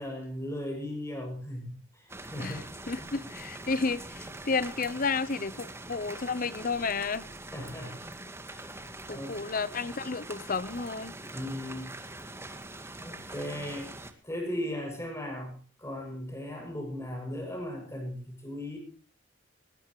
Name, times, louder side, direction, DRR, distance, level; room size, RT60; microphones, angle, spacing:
voice 1, 0.0-2.7 7.5-8.0 8.5-8.8 9.1-9.3 9.8-9.9 11.3-11.9 13.0-13.9 14.2-18.8, left 1 dB, 15° left, 7.2 m, -37 dB
sound 1, 2.1-14.1, right 2 dB, 15° right, 1.8 m, -43 dB
voice 2, 2.4-7.2 9.1-11.2, left 4 dB, 45° left, 0.9 m, -32 dB
20.0 x 19.5 x 3.2 m
head